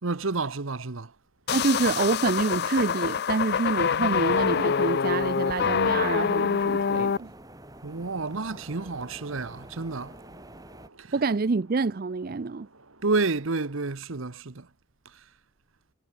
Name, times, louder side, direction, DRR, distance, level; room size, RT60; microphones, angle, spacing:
voice 1, 0.0-1.1 3.8-4.3 7.8-10.2 11.0-11.1 13.0-14.7 15.0-15.2, right 3 dB, 75° right, 1.1 m, -30 dB
sound 1, 0.9-13.9, right 2 dB, 90° right, 6.4 m, -60 dB
sound 2, 1.5-7.2, left 6 dB, 50° left, 0.4 m, -25 dB
voice 2, 1.5-7.3 11.1-12.7, right 4 dB, 45° right, 0.5 m, -27 dB
sound 3, 4.2-10.9, right 1 dB, 20° right, 5.1 m, -48 dB
head